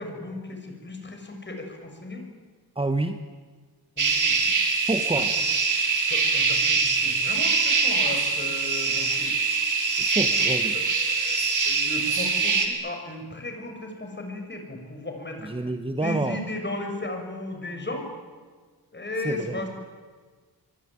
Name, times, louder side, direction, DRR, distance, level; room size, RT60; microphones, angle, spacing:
voice 1, 0.0-2.3 4.0-4.6 5.3-5.4 6.1-9.3 10.7-15.5 16.0-18.1 18.9-19.7, left 1 dB, 30° left, 4 dB, 6.6 m, -35 dB
voice 2, 2.8-3.2 4.9-5.4 10.0-10.7 15.4-16.4 19.2-19.6, right 2 dB, 15° right, 7 dB, 1.3 m, -28 dB
sound 1, 4.0-12.7, right 4 dB, 55° right, 4.0 m, -23 dB
24.5 x 24.0 x 9.8 m, 1.5 s
wide cardioid pair, 115°, 38 cm